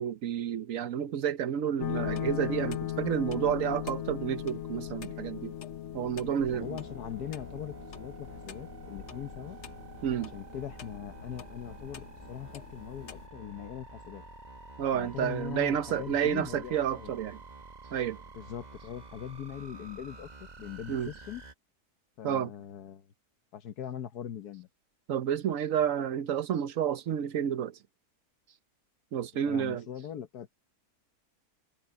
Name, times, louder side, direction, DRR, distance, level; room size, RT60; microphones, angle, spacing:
voice 1, 0.0-5.5 5.9-6.8 10.0-10.3 14.8-17.4 17.9-18.2 20.9-21.1 22.2-22.5 25.1-27.8 29.1-29.8, right 9 dB, 60° right, 1.1 m, -30 dB
sound 1, 1.8-13.3, left 11 dB, 55° left, 1.1 m, -39 dB
voice 2, 6.5-9.6 10.1-14.2 14.9-17.2 18.3-21.4 22.2-23.1 23.5-24.7 29.5-30.5, left 9 dB, 80° left, 1.6 m, -41 dB
sound 2, 6.6-21.5, right 3 dB, 30° right, 1.5 m, -49 dB
omnidirectional pair, 1.6 m